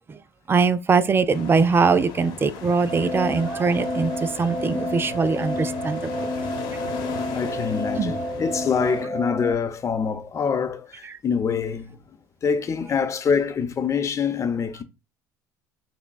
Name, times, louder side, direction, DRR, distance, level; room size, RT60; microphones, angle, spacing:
voice 1, 0.5-6.1 8.0-8.1, right 4 dB, 25° right, 0.4 m, -22 dB
sound 1, 1.3-9.0, left 7 dB, 65° left, 0.9 m, -37 dB
sound 2, 2.9-9.5, left 1 dB, 55° right, 1.4 m, -30 dB
voice 2, 7.3-12.0 12.4-14.8, left 6 dB, 35° left, 0.7 m, -25 dB
5.9 x 2.2 x 2.3 m
hypercardioid pair, 80°, 9 cm